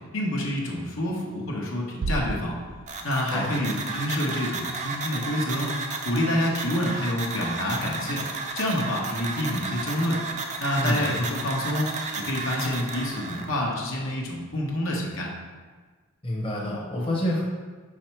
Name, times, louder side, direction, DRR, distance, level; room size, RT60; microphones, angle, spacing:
voice 1, 0.1-2.6 3.0-5.8 6.0-8.3 8.5-10.2 10.6-15.3, left 1 dB, 65° left, -2 dB, 1.1 m, -28 dB
sound 1, 2.0-3.8, right 2 dB, 85° right, 0.5 m, -34 dB
sound 2, 2.9-13.5, right 3 dB, 35° right, 0.6 m, -33 dB
voice 2, 16.2-17.4, left 1 dB, 25° left, -4 dB, 1.0 m, -27 dB
5.5 x 4.7 x 4.5 m, 1.4 s
head